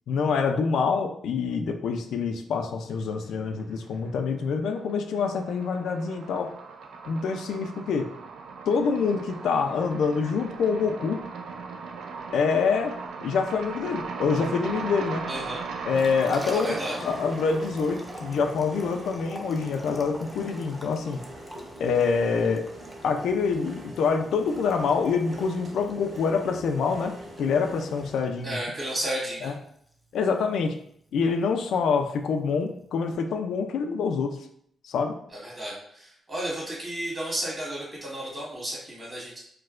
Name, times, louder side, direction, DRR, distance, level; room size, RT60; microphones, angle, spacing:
voice 1, 0.1-6.5 7.1-8.1 8.7-11.2 12.3-12.9 13.2-15.2 15.8-21.2 21.8-22.7 23.0-28.6 29.4-29.5 30.1-30.7 31.1-34.4 34.8-35.2, left 5 dB, 85° left, 5 dB, 0.3 m, -26 dB
sound 1, 3.4-4.1 4.4-19.6, right 5 dB, 75° right, 0.4 m, -39 dB
voice 2, 15.3-15.6 16.5-16.9 28.4-29.5 35.4-39.4, right 1 dB, 25° right, -6 dB, 1.4 m, -33 dB
Liquid, 15.8-33.1, equal, 5° right, 0.4 m, -45 dB
sound 2, 17.0-28.2, right 1 dB, 45° right, 1.2 m, -44 dB
4.4 x 2.1 x 2.4 m, 0.68 s
wide cardioid pair, 155°, 0 cm